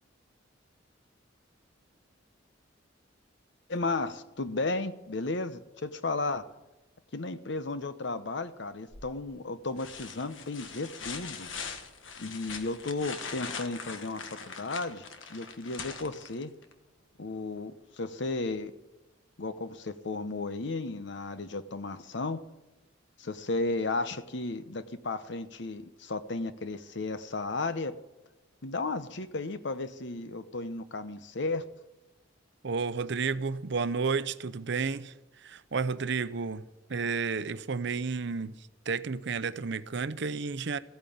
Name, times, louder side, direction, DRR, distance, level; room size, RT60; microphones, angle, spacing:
voice 1, 3.7-6.4 7.1-11.5 12.2-15.0 15.3-16.5 17.2-18.7 19.4-22.4 23.2-27.9 28.6-31.7, left 3 dB, 65° left, 0.9 m, -34 dB
sound 1, 8.9-9.3 9.8-16.7 18.5-18.6, left 5 dB, 80° left, 1.4 m, -42 dB
voice 2, 32.6-40.8, right 5 dB, 65° right, 0.7 m, -32 dB
15.0 x 9.1 x 8.6 m
head